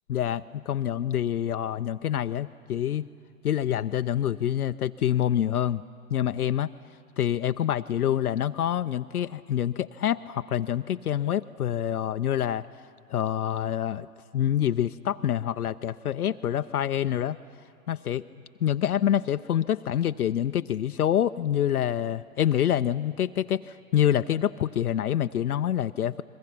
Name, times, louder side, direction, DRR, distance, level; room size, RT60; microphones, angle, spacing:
voice 1, 0.1-3.1 3.4-5.8 6.1-6.7 7.2-12.7 13.1-14.1 14.3-17.4 17.9-18.2 18.6-26.2, left 10 dB, 75° left, 10 dB, 0.6 m, -26 dB
29.5 x 22.0 x 5.8 m, 2.6 s
figure-of-eight pair, 120°, 45 cm